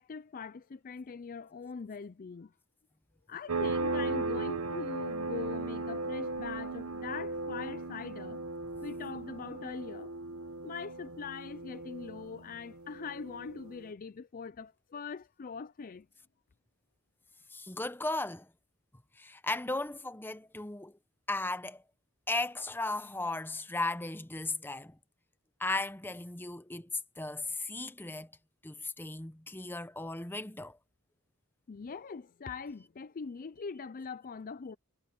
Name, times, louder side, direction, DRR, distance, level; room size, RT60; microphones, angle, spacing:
voice 1, 0.0-2.5 3.3-8.4 8.8-10.1 10.6-16.1 31.7-34.8, left 5 dB, 40° left, 0.4 m, -42 dB
sound 1, 3.5-13.8, right 3 dB, 70° right, 1.2 m, -37 dB
voice 2, 17.5-18.5 19.2-21.0 21.3-21.8 22.3-25.0 25.6-28.3 28.6-30.8, left 2 dB, 10° left, 0.8 m, -36 dB
head